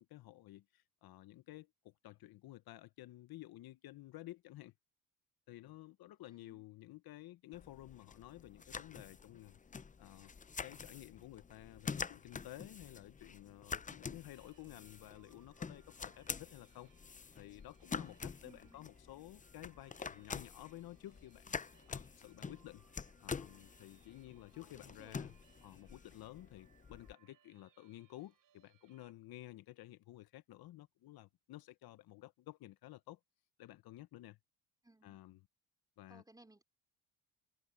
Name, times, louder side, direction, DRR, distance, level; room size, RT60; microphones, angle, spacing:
voice 1, 0.0-4.7 5.5-9.6 10.0-10.3 10.6-16.9 17.3-21.5 21.9-22.8 23.2-25.3 25.6-33.2 33.6-34.4 35.0-35.4 36.0-36.2, left 15 dB, 65° left, 1.2 m, -53 dB
voice 2, 6.3-6.6 14.4-14.9 18.4-18.8 24.5-25.3 34.8-35.2 36.1-36.6, right 2 dB, 10° right, 4.1 m, -63 dB
sound 1, 7.5-27.1, left 5 dB, 20° left, 0.7 m, -47 dB
sound 2, 14.3-29.1, right 9 dB, 55° right, 5.1 m, -72 dB
supercardioid pair, 70°, 40 cm